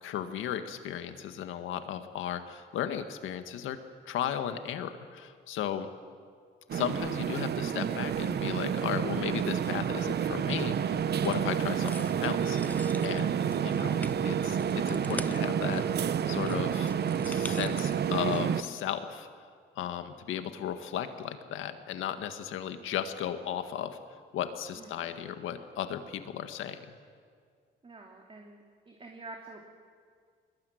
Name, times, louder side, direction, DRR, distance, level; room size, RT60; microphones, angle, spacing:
voice 1, 0.0-3.8 4.1-5.9 6.7-15.9 16.3-16.9 17.3-19.3 19.8-24.0 24.3-26.9, left 10 dB, 85° left, 8 dB, 1.8 m, -35 dB
sound 1, 6.7-18.6, right 8 dB, 55° right, 0.9 m, -29 dB
sound 2, 11.2-11.5 11.8-18.7, left 1 dB, 10° left, 0.8 m, -45 dB
voice 2, 27.8-28.6 28.9-29.6, right 3 dB, 25° right, 1 dB, 2.9 m, -47 dB
22.0 x 21.5 x 9.4 m, 2.1 s
cardioid pair, 90°, 20 cm